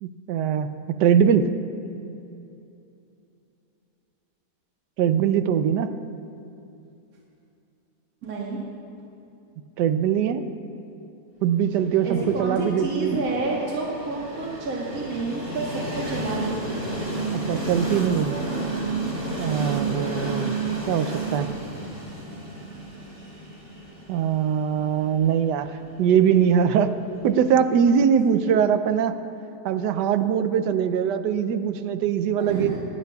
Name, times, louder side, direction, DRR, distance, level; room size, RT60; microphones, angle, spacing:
voice 1, 0.0-0.7 1.0-1.5 5.0-5.9 9.8-10.4 11.4-13.1 17.3-18.4 19.4-20.6 20.9-21.5 24.1-25.7 26.0-26.9 27.2-29.2 29.6-32.7, right 8 dB, 85° right, 10 dB, 1.2 m, -22 dB
voice 2, 8.2-8.6 12.0-16.9 19.4-19.9 32.4-32.8, right 3 dB, 60° right, -4 dB, 1.8 m, -29 dB
Train, 12.0-27.9, right 2 dB, 35° right, 2.3 m, -32 dB
21.0 x 11.5 x 2.3 m, 2.7 s
omnidirectional pair, 1.8 m